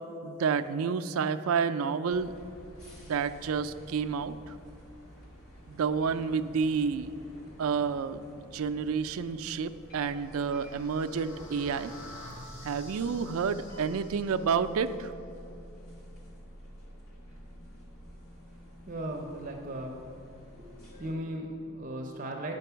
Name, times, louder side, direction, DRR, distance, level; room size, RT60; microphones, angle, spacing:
voice 1, 0.2-2.3 3.1-4.5 5.7-7.1 7.6-11.9 12.6-15.1, right 6 dB, 75° right, 10 dB, 0.4 m, -30 dB
sound 1, 2.1-21.1, equal, 75° left, 1.7 m, -50 dB
sound 2, 9.7-14.8, left 1 dB, 60° left, 2.1 m, -49 dB
voice 2, 18.9-19.9 20.6-20.7 21.0-22.5, right 1 dB, 35° right, 1 dB, 0.6 m, -37 dB
8.3 x 5.2 x 6.8 m, 2.6 s
head